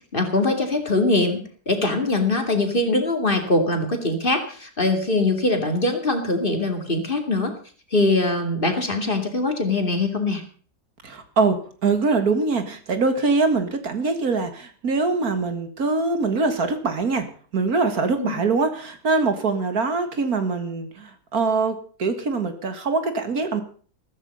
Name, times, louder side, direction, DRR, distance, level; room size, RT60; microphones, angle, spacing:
voice 1, 0.1-1.4 1.7-7.5 7.9-10.4 18.2-18.3, left 2 dB, 30° left, 5 dB, 2.8 m, -22 dB
voice 2, 11.0-17.3 17.5-23.6, right 4 dB, 60° right, 8 dB, 2.2 m, -23 dB
14.5 x 14.0 x 5.5 m, 0.43 s
omnidirectional pair, 1.7 m